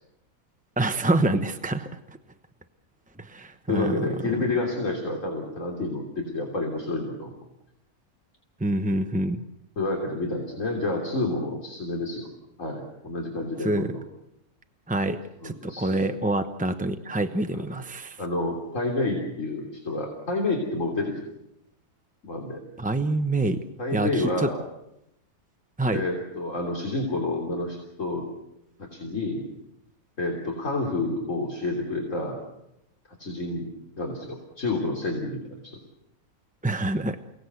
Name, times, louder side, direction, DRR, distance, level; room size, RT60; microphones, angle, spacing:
voice 1, 0.8-1.9 3.2-4.0 8.6-9.4 13.6-13.9 14.9-18.2 22.8-23.6 23.9-24.5 25.8-26.0 36.6-37.2, right 2 dB, 10° right, 8 dB, 0.6 m, -26 dB
voice 2, 3.7-7.3 9.8-12.3 12.6-14.0 15.4-16.2 17.5-17.7 18.2-21.2 22.2-22.6 23.8-24.6 25.9-28.3 28.8-29.5 30.2-32.4 33.2-33.7 34.0-35.8, left 2 dB, 55° left, 0 dB, 3.7 m, -29 dB
29.0 x 18.5 x 8.1 m, 0.85 s
omnidirectional pair, 1.6 m